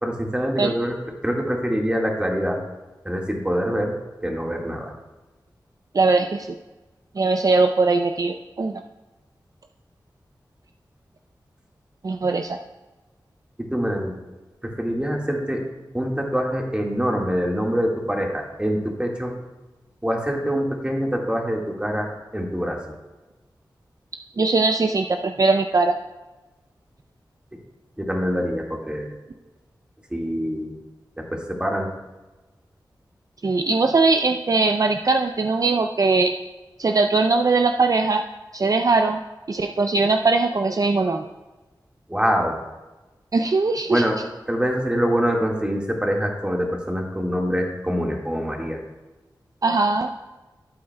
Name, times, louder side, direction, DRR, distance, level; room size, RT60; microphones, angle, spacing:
voice 1, 0.0-1.0 1.2-2.6 3.0-3.9 4.2-4.9 13.6-14.1 14.6-15.6 15.9-19.3 20.0-22.8 28.0-29.2 30.1-30.8 31.2-31.9 42.1-42.6 43.9-44.2 44.5-48.8, equal, 15° right, 0 dB, 1.6 m, -25 dB
voice 2, 5.9-6.5 7.2-8.8 12.0-12.6 24.4-26.0 33.4-36.3 36.8-38.2 38.5-39.2 39.5-41.3 43.3-44.0 49.6-50.1, right 3 dB, 50° right, 6 dB, 0.4 m, -20 dB
12.5 x 8.4 x 2.2 m, 1.1 s
cardioid pair, 55°, 8 cm